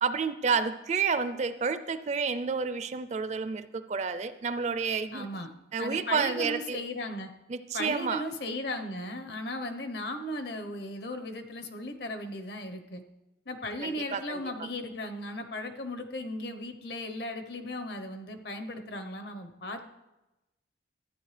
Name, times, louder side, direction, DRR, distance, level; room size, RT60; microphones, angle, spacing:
voice 1, 0.0-5.3 5.7-6.8 7.5-8.2 13.8-14.4, right 5 dB, 40° right, 12 dB, 0.4 m, -30 dB
voice 2, 5.1-5.5 5.8-7.3 7.7-13.0 13.5-19.8, left 1 dB, 60° left, 6 dB, 0.9 m, -36 dB
14.0 x 9.4 x 3.3 m, 0.98 s
head